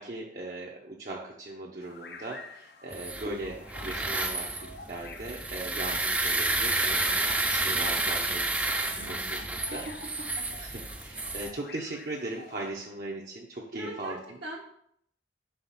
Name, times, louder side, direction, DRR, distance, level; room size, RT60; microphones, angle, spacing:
voice 1, 0.0-9.4 9.7-9.8 10.5-14.2, right 2 dB, 50° right, -3 dB, 0.7 m, -39 dB
sound 1, 1.8-12.7, left 4 dB, 60° left, 0.6 m, -48 dB
sound 2, 2.9-11.5, right 2 dB, 10° right, 0.3 m, -30 dB
voice 2, 9.0-9.9 13.7-14.6, right 1 dB, 70° right, -5 dB, 1.0 m, -42 dB
5.7 x 3.4 x 5.6 m, 0.70 s
head